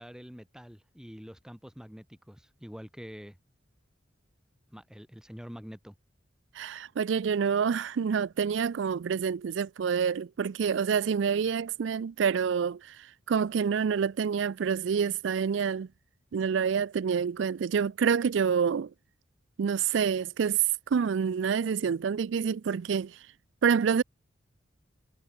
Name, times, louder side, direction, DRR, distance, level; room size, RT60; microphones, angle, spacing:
voice 1, 0.0-3.4 4.7-5.9, equal, 5° right, 1.9 m, -46 dB
voice 2, 6.5-15.9 16.3-18.9 19.6-23.3 23.6-24.0, right 6 dB, 70° right, 0.4 m, -27 dB
head